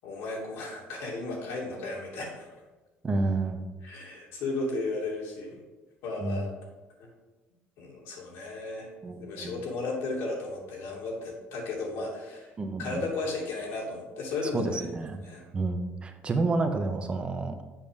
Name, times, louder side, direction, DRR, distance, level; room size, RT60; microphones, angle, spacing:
voice 1, 0.0-2.6 3.8-5.6 6.0-6.5 7.0-7.1 7.8-12.5 12.8-14.9 15.2-15.4, left 3 dB, 85° left, -2 dB, 2.8 m, -34 dB
voice 2, 3.0-3.7 6.2-6.4 9.0-9.6 12.6-13.0 14.5-15.2 15.5-17.5, right 3 dB, 25° right, 7 dB, 0.9 m, -29 dB
7.4 x 6.0 x 5.2 m, 1.2 s
cardioid pair, 140°, 4 cm